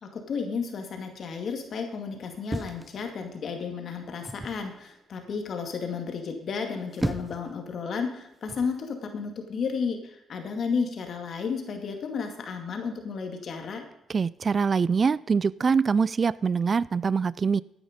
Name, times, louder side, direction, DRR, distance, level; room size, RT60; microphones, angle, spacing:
voice 1, 0.0-13.8, left 5 dB, 55° left, 4 dB, 2.3 m, -32 dB
sound 1, 2.5-3.5 4.3-4.7 6.6-7.5 8.5-8.8, right 1 dB, 10° right, 0.8 m, -34 dB
voice 2, 14.1-17.6, right 5 dB, 40° right, 21 dB, 0.3 m, -24 dB
13.0 x 9.6 x 5.2 m, 0.86 s
cardioid pair, 90°, 0 cm